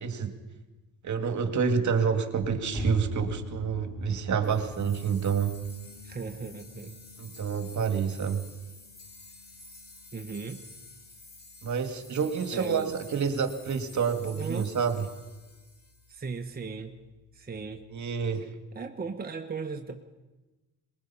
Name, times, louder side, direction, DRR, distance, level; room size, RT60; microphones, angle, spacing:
voice 1, 0.0-0.4 1.0-5.6 7.2-8.4 11.6-15.1 17.9-18.5, right 6 dB, 50° right, 7 dB, 2.1 m, -28 dB
sound 1, 2.4-18.3, left 4 dB, 50° left, 3.9 m, -52 dB
sound 2, 2.7-8.3, equal, ahead, 2.0 m, -40 dB
sound 3, 4.4-16.5, left 2 dB, 25° left, 3.2 m, -51 dB
voice 2, 6.0-7.0 10.1-10.6 12.5-12.9 14.3-14.7 16.1-16.9 17.3-17.8 18.7-20.0, right 4 dB, 25° right, 3 dB, 1.3 m, -37 dB
22.5 x 20.5 x 5.7 m, 1.2 s
cardioid pair, 90°, 37 cm